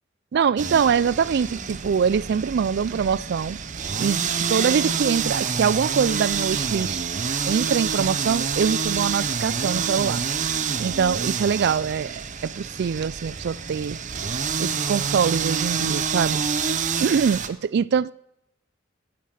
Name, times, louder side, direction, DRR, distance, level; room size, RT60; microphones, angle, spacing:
voice 1, 0.3-3.6 4.0-4.2 4.5-7.0 7.5-10.2 10.8-14.0 14.6-16.4 17.0-18.1, right 6 dB, 55° right, 0.3 m, -23 dB
sound 1, 0.6-17.5, right 6 dB, 40° right, 0.7 m, -27 dB
13.5 x 7.6 x 6.4 m
head